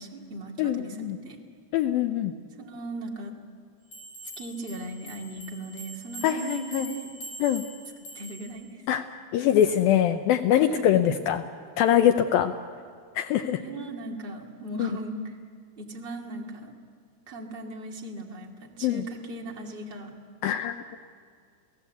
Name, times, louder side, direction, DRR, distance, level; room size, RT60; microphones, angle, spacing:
voice 1, 0.0-1.4 2.6-3.3 4.4-7.1 8.0-8.8 10.5-11.0 13.6-15.3 15.8-16.7 17.3-20.1, right 2 dB, 20° right, 0 dB, 1.6 m, -38 dB
voice 2, 0.6-1.2 1.7-2.3 6.2-6.9 7.4-7.6 8.9-9.0 9.3-11.4 11.8-12.5 13.2-13.6 14.8-14.9 18.8-19.0 20.4-21.0, left 10 dB, 75° left, 7 dB, 2.3 m, -23 dB
sound 1, 3.9-8.6, right 1 dB, 50° left, 7.1 m, -43 dB
29.5 x 17.5 x 8.2 m, 2.2 s
omnidirectional pair, 4.7 m